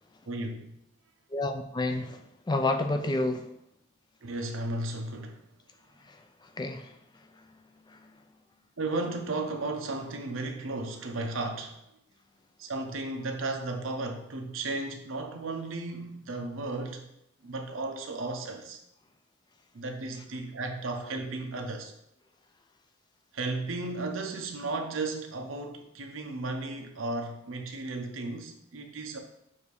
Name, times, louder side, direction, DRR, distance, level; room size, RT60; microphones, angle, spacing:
voice 1, 0.3-0.7 4.2-5.4 8.8-11.8 12.6-17.0 17.4-18.8 19.7-21.9 23.3-29.2, right 2 dB, 80° right, 4 dB, 0.8 m, -34 dB
voice 2, 1.3-2.2 2.5-3.4 6.6-6.8, left 2 dB, 20° left, 6 dB, 0.4 m, -28 dB
7.2 x 2.8 x 4.8 m, 0.78 s
head